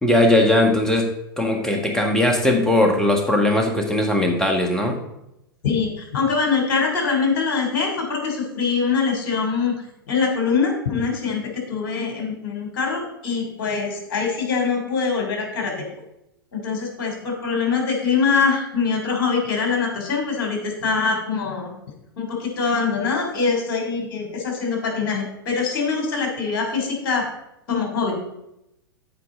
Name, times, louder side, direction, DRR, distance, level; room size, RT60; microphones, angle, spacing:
voice 1, 0.0-5.0, left 1 dB, 5° left, 2 dB, 1.7 m, -19 dB
voice 2, 5.6-9.7 10.1-15.7 16.5-21.7 22.2-27.3 27.7-28.1, left 5 dB, 55° left, 2 dB, 3.2 m, -23 dB
14.0 x 4.9 x 3.8 m, 0.85 s
figure-of-eight pair, 95°, 12 cm